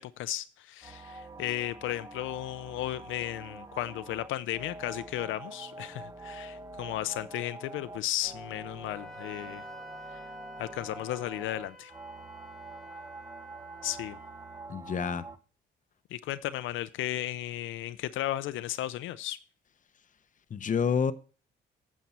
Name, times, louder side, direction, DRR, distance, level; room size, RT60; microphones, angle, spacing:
voice 1, 0.0-9.6 10.1-10.2 10.6-11.9 13.8-14.2 16.1-19.4, left 14 dB, 85° left, 0.5 m, -35 dB
sound 1, 0.8-15.4, right 2 dB, 15° right, 0.9 m, -45 dB
Wind instrument woodwind instrument, 8.9-14.7, right 1 dB, ahead, 1.6 m, -50 dB
voice 2, 14.7-15.2 20.5-21.1, left 6 dB, 40° left, 0.8 m, -28 dB
9.3 x 7.5 x 4.3 m
cardioid pair, 90°, 20 cm